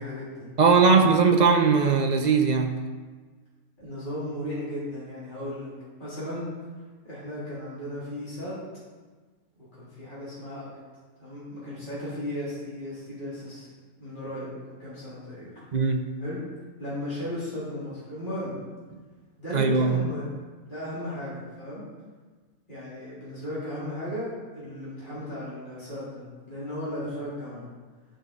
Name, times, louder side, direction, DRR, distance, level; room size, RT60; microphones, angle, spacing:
voice 1, 0.0-1.0 3.8-5.7 6.0-6.5 7.0-8.5 9.5-10.7 11.2-13.7 14.0-15.6 16.2-16.4 16.8-18.6 19.4-21.8 22.7-27.7, left 1 dB, 30° left, -10 dB, 3.7 m, -36 dB
voice 2, 0.6-2.8 15.7-16.1 19.5-20.0, right 5 dB, 45° right, 4 dB, 0.5 m, -20 dB
12.0 x 6.4 x 4.0 m, 1.4 s
omnidirectional pair, 1.6 m